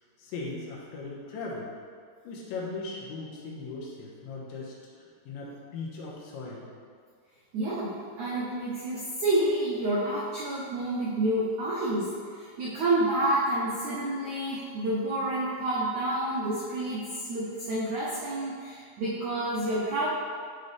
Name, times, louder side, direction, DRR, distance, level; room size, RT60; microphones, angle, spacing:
voice 1, 0.2-1.7 2.2-6.7, left 3 dB, 80° left, -4 dB, 3.5 m, -38 dB
voice 2, 7.5-20.1, right 1 dB, 90° right, -8 dB, 1.6 m, -29 dB
11.5 x 4.1 x 3.4 m, 2.1 s
omnidirectional pair, 5.2 m